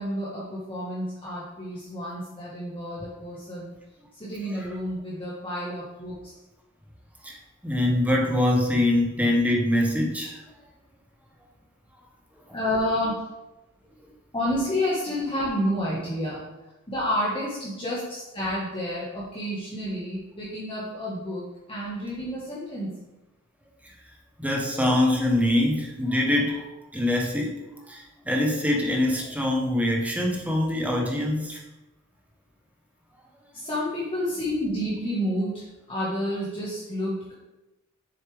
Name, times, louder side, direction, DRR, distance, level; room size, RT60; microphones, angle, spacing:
voice 1, 0.0-3.7 4.2-6.1 12.5-13.2 14.3-16.4 16.9-22.9 33.5-37.3, equal, 25° left, -8 dB, 1.6 m, -30 dB
voice 2, 7.6-10.4 12.5-12.6 23.8-24.0 24.4-31.6, left 1 dB, 5° right, -1 dB, 1.2 m, -24 dB
7.2 x 6.6 x 3.5 m, 1.0 s
head